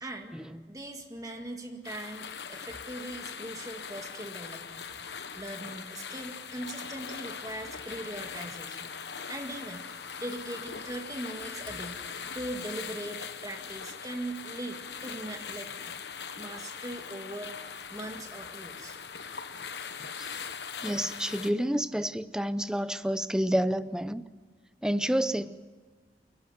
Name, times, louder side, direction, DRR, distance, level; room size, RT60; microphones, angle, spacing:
voice 1, 0.0-4.8 5.4-8.9 9.3-9.9 10.2-12.0 12.3-16.0 16.4-19.0, right 1 dB, 20° right, 2.0 m, -40 dB
sound 1, 1.8-21.5, left 6 dB, 80° left, 1.2 m, -41 dB
voice 2, 20.8-24.2 24.8-25.6, equal, 5° right, 0.6 m, -29 dB
29.0 x 12.0 x 9.1 m
head